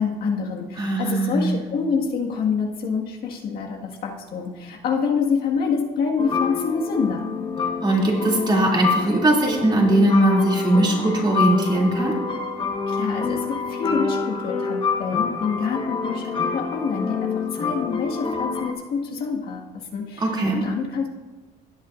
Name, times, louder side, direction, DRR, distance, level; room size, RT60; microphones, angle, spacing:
voice 1, 0.0-7.2 12.9-21.1, left 5 dB, 65° left, -1 dB, 1.8 m, -26 dB
voice 2, 0.8-1.6 7.8-12.2 20.2-20.6, right 1 dB, 25° right, -2 dB, 2.8 m, -20 dB
sound 1, 6.2-18.7, left 5 dB, 30° left, 1.3 m, -27 dB
18.0 x 8.2 x 2.6 m, 1.2 s
cardioid pair, 110°, 17 cm